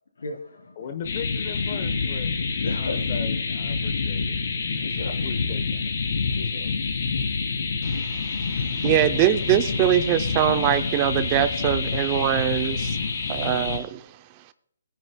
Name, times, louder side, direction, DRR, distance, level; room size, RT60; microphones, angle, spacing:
voice 1, 0.2-0.9 2.6-3.0 4.7-5.1 6.3-6.7 8.0-8.1 8.4-8.8, left 3 dB, 80° left, 2 dB, 3.7 m, -36 dB
voice 2, 0.8-2.4 2.8-4.4 5.0-5.8 9.0-9.4, left 7 dB, 35° left, 7 dB, 0.9 m, -38 dB
sound 1, 1.0-13.8, left 4 dB, 60° left, 3.1 m, -27 dB
voice 3, 7.8-13.0 13.3-14.1, right 12 dB, 25° right, 12 dB, 0.5 m, -23 dB
20.0 x 9.4 x 2.2 m, 0.68 s
hypercardioid pair, 165°, 0 cm